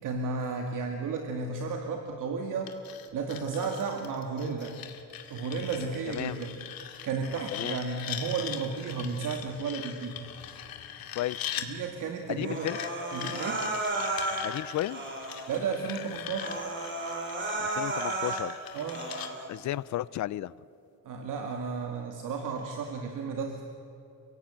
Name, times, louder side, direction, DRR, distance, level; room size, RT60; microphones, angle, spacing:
voice 1, 0.0-2.7 3.1-4.8 5.3-6.6 7.0-10.2 11.6-12.7 13.1-13.7 15.5-16.5 18.7-19.1 21.0-23.6, right 5 dB, 55° right, 3 dB, 2.1 m, -33 dB
sound 1, 2.7-11.7 12.7-19.3, left 10 dB, 70° left, 2.2 m, -41 dB
voice 2, 6.1-6.4 7.5-7.8 11.2-11.4 12.4-12.8 14.4-15.0 17.6-18.5 19.5-20.5, left 14 dB, 50° left, 21 dB, 0.5 m, -33 dB
Human voice, 12.4-14.5 14.9-15.5 16.0-16.1 16.3-18.5 18.9-19.5, right 2 dB, 30° right, 3.9 m, -33 dB
30.0 x 16.5 x 8.9 m, 2.8 s
cardioid pair, 155°, 36 cm